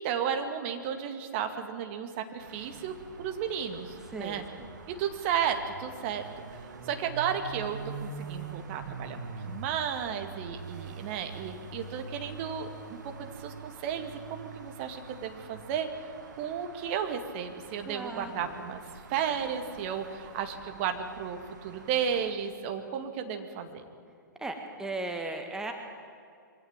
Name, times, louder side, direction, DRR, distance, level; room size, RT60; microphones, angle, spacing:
voice 1, 0.0-4.4 4.9-6.3 6.9-15.9 16.3-18.8 19.1-23.8, right 8 dB, 35° right, 6 dB, 2.1 m, -33 dB
sound 1, 2.4-22.3, right 4 dB, 60° right, 2.4 m, -45 dB
voice 2, 4.1-4.7 17.8-18.5 24.4-25.7, right 2 dB, 5° right, 4 dB, 1.6 m, -37 dB
23.0 x 17.5 x 8.9 m, 2.3 s
figure-of-eight pair, 115°, 11 cm